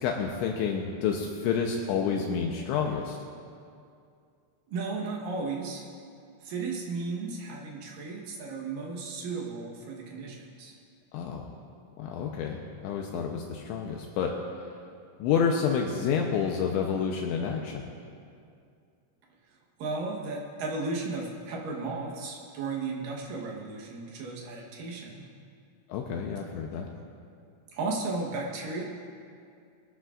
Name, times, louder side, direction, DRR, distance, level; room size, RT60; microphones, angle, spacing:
voice 1, 0.0-3.2 11.1-11.5 12.0-14.3 15.2-17.9 25.9-26.9, left 6 dB, 80° left, 1 dB, 3.0 m, -29 dB
voice 2, 4.7-5.9 6.4-10.8 19.5-25.3 27.7-28.8, right 3 dB, 75° right, -1 dB, 2.0 m, -35 dB
23.0 x 13.5 x 2.5 m, 2.4 s
omnidirectional pair, 5.7 m